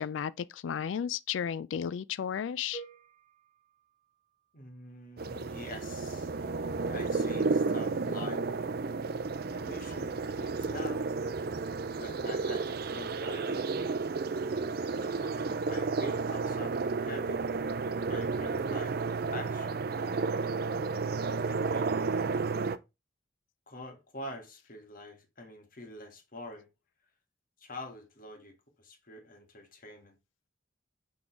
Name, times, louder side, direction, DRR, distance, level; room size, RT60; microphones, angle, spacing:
voice 1, 0.0-2.8, left 8 dB, 80° left, 0.3 m, -33 dB
sound 1, 2.7-4.8, right 4 dB, 20° left, 1.9 m, -50 dB
voice 2, 4.5-6.5 6.9-8.4 9.5-11.1 11.9-13.8 14.7-17.4 18.1-20.3 21.5-21.9 23.7-26.7 27.6-30.2, left 1 dB, 45° left, 1.7 m, -46 dB
sound 2, 5.2-22.8, right 4 dB, 55° right, 0.5 m, -32 dB
6.1 x 3.9 x 4.5 m
head